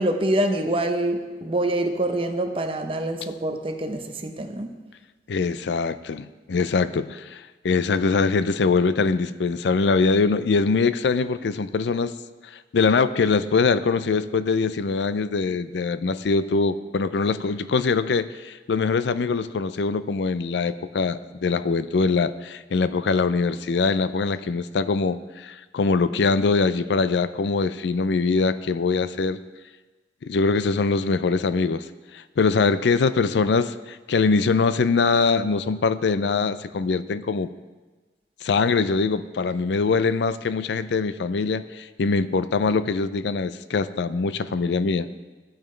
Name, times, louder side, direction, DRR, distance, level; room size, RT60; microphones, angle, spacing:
voice 1, 0.0-4.7, right 1 dB, 30° right, 5 dB, 0.7 m, -25 dB
voice 2, 5.3-12.1 12.7-29.4 30.2-31.9 32.1-37.5 38.4-45.1, left 4 dB, 80° left, 14 dB, 0.4 m, -23 dB
15.0 x 8.8 x 3.2 m, 1.2 s
head